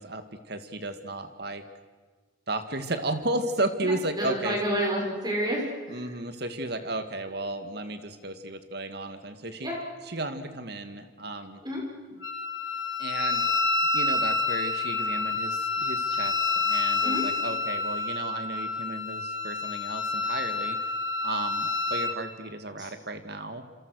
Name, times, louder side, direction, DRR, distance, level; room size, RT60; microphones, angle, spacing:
voice 1, 0.0-1.6 2.5-4.6 5.9-9.7 10.1-11.6 13.0-13.4 13.9-20.8 21.2-23.6, right 2 dB, 55° right, 8 dB, 2.1 m, -34 dB
voice 2, 3.8-6.1 9.6-9.8 11.6-11.8 17.0-17.3 22.8-22.9, equal, 20° right, -1 dB, 6.3 m, -30 dB
Wind instrument woodwind instrument, 12.2-22.2, left 3 dB, 75° left, 2.5 m, -28 dB
27.5 x 27.5 x 6.5 m, 1.4 s
head